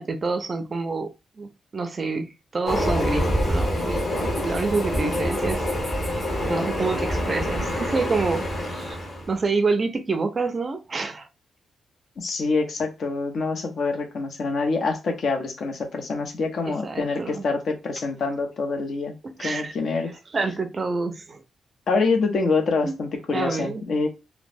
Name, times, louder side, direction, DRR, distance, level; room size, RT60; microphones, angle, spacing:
voice 1, 0.0-4.1 4.4-5.6 6.5-9.0 9.3-11.3 16.7-17.4 19.2-19.7 20.3-21.4 22.8-22.9 23.3-23.8, right 3 dB, 35° right, 0.4 m, -27 dB
Train, 2.7-9.4, equal, 30° left, 1.3 m, -26 dB
voice 2, 12.2-20.1 21.9-24.1, left 4 dB, 60° left, 0.7 m, -26 dB
3.0 x 2.0 x 2.5 m
cardioid pair, 105°, 0 cm